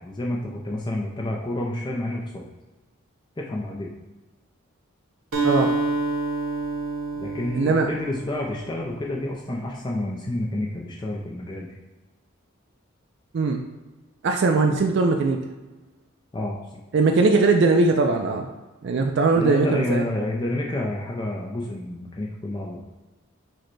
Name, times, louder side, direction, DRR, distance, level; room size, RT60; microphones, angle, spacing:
voice 1, 0.0-2.5 3.4-3.9 7.2-11.7 16.3-16.8 19.3-22.8, left 1 dB, 20° left, -3 dB, 0.4 m, -29 dB
Acoustic guitar, 5.3-9.2, right 3 dB, 85° right, 0.9 m, -28 dB
voice 2, 7.5-7.9 13.3-13.6 14.2-15.4 16.9-18.5 18.8-20.0, right 3 dB, 55° right, 3 dB, 0.3 m, -20 dB
4.8 x 2.2 x 4.5 m, 1.2 s
head